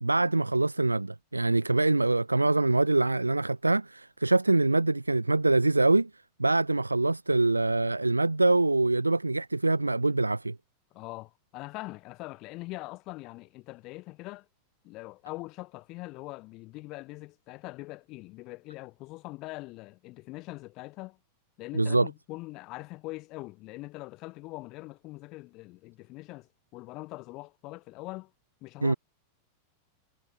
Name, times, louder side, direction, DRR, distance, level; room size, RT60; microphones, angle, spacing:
voice 1, 0.0-6.1 6.4-10.6 21.8-22.1 28.8-28.9, right 2 dB, 85° right, 0.4 m, -24 dB
voice 2, 10.9-14.5 14.8-21.2 21.6-28.3 28.6-29.0, left 21 dB, 40° left, 2.0 m, -42 dB
figure-of-eight pair, 90°, 0 cm